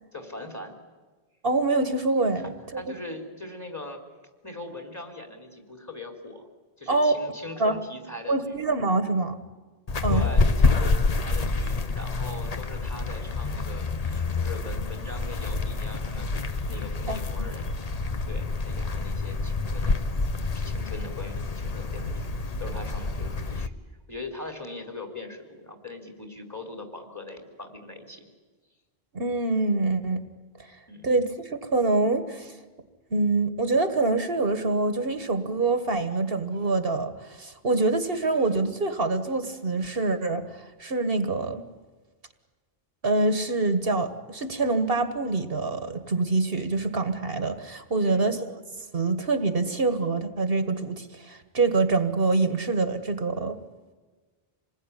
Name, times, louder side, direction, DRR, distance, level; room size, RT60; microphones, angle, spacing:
voice 1, 0.1-0.7 2.4-4.0 4.4-6.5 6.8-8.6 10.0-16.3 16.7-17.6 18.3-20.1 20.5-22.3 22.6-23.8 24.1-28.3 30.9-31.0 48.0-48.4, left 2 dB, 15° left, 4 dB, 3.8 m, -41 dB
voice 2, 1.4-2.9 6.9-7.1 7.6-7.8 8.3-9.4 10.0-10.3 17.1-17.2 29.1-30.2 30.6-30.7 31.0-32.6 33.1-41.6 43.0-48.4 48.9-53.6, right 3 dB, 70° right, 9 dB, 1.7 m, -25 dB
sound 1, 9.9-23.7, left 3 dB, 40° left, 1.0 m, -27 dB
27.0 x 20.0 x 9.9 m, 1.4 s
omnidirectional pair, 1.0 m